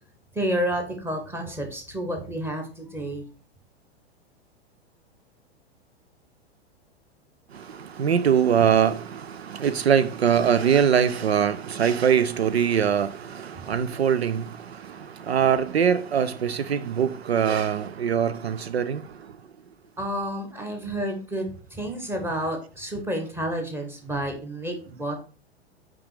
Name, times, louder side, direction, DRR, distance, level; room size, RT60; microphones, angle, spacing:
voice 1, 0.3-3.3 13.6-13.7 20.0-25.2, right 1 dB, 5° right, 1.4 m, -30 dB
voice 2, 8.0-9.2 9.5-14.5 15.3-19.0, right 8 dB, 75° right, 0.5 m, -22 dB
5.7 x 5.2 x 3.4 m
figure-of-eight pair, 100°, 32 cm